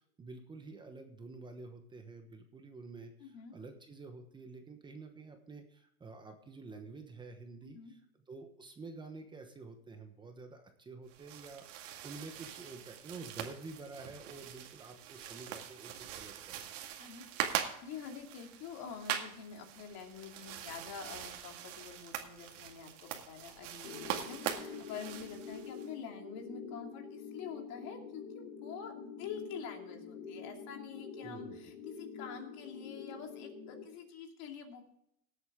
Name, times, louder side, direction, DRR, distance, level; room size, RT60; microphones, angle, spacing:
voice 1, 0.0-8.0 8.3-16.6 24.5-24.7 31.2-31.7, right 3 dB, 10° right, 5 dB, 1.0 m, -49 dB
voice 2, 3.2-3.5 7.6-7.9 17.0-17.2 17.5-34.8, left 7 dB, 40° left, 3 dB, 2.6 m, -47 dB
sound 1, 11.1-25.9, right 10 dB, 60° right, 2.1 m, -42 dB
sound 2, 23.8-33.8, left 5 dB, 60° left, 4.0 m, -46 dB
18.0 x 8.1 x 3.6 m, 0.73 s
supercardioid pair, 145°, 43 cm